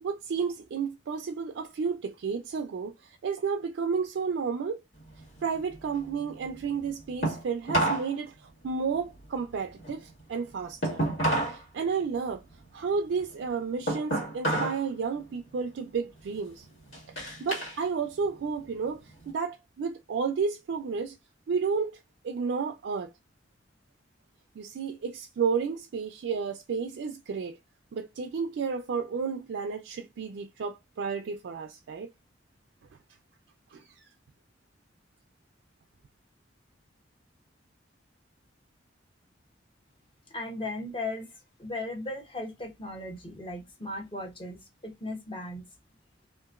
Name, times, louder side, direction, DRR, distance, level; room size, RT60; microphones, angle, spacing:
voice 1, 0.0-4.8 5.4-11.0 11.5-12.4 12.7-16.6 17.1-21.2 21.5-22.0 22.2-23.1 24.6-27.6 27.9-32.1 33.7-34.0, right 5 dB, 70° right, 0.3 m, -32 dB
sound 1, 5.0-8.1 8.4-11.6 12.0-14.9 15.2-15.6 16.1-17.8 18.2-19.3, right 1 dB, 85° left, 1.8 m, -31 dB
voice 2, 40.3-45.7, left 2 dB, 30° left, 0.8 m, -37 dB
2.8 x 2.5 x 2.4 m
head